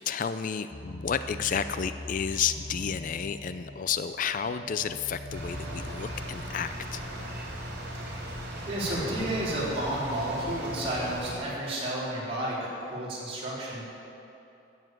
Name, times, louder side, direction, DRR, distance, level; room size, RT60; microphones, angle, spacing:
voice 1, 0.1-7.0, left 7 dB, 45° left, 11 dB, 0.4 m, -31 dB
sound 1, 0.7-6.3, left 1 dB, 70° left, 1.3 m, -42 dB
sound 2, 5.3-11.4, right 1 dB, 60° right, 3.6 m, -37 dB
voice 2, 7.9-8.3 8.7-13.8, right 1 dB, 30° right, -7 dB, 3.7 m, -32 dB
13.5 x 7.4 x 9.1 m, 2.8 s
head